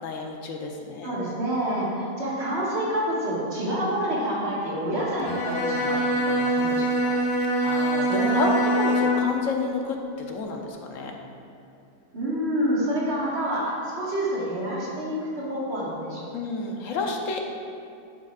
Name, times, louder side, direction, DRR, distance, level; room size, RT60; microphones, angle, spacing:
voice 1, 0.0-1.2 7.6-11.2 16.3-17.4, left 3 dB, 65° left, 2 dB, 1.1 m, -30 dB
voice 2, 1.0-7.1 8.1-8.6 12.1-16.3, right 1 dB, 45° right, -6 dB, 2.0 m, -28 dB
Bowed string instrument, 5.2-9.4, right 1 dB, 85° left, 1.4 m, -24 dB
10.5 x 6.9 x 2.4 m, 2.4 s
omnidirectional pair, 1.5 m